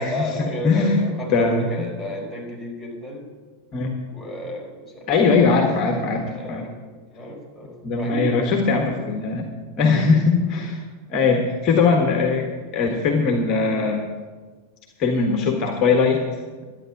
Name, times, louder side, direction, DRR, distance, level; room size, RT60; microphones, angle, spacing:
voice 1, 0.0-3.3 4.0-5.5 6.3-6.8 7.1-8.4 9.9-10.1 10.4-10.7, left 1 dB, ahead, -2 dB, 4.8 m, -33 dB
voice 2, 0.6-1.0 1.3-1.7 3.7-3.9 5.1-6.7 7.8-9.5 9.8-10.8 11.1-12.5 12.7-14.0 15.0-16.2, left 4 dB, 35° left, 3 dB, 1.5 m, -20 dB
12.0 x 9.4 x 7.3 m, 1.4 s
figure-of-eight pair, 90°, 0 cm